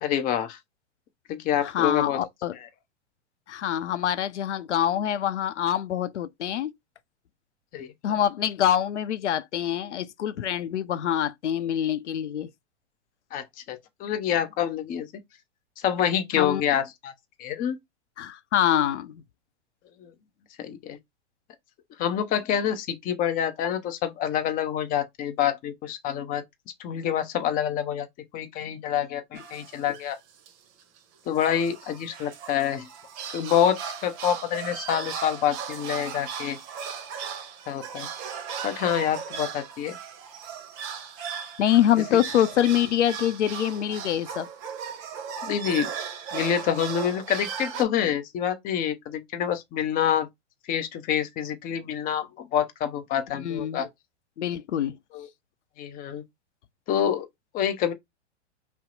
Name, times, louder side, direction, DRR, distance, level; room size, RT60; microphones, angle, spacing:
voice 1, 0.0-0.6 1.3-2.2 2.5-2.7 7.7-8.1 13.3-15.1 15.8-17.1 17.4-17.8 20.0-20.1 20.6-21.0 22.0-26.4 26.8-28.1 28.3-30.2 31.3-32.9 33.3-36.6 37.7-38.1 38.6-40.0 45.4-45.9 46.3-50.3 50.7-53.9 55.1-55.3 55.8-56.2 56.9-57.3 57.5-57.9, left 9 dB, 25° left, 0.6 m, -27 dB
voice 2, 1.6-2.6 3.5-6.7 8.0-12.5 16.4-16.6 18.2-19.2 41.6-44.5 53.4-53.9 54.4-54.9, left 10 dB, 80° left, 0.6 m, -25 dB
sound 1, 29.3-30.2 30.5-30.6 30.8-31.0 31.4-47.8, right 7 dB, 35° right, 0.8 m, -37 dB
2.8 x 2.0 x 3.8 m
hypercardioid pair, 110°, 35 cm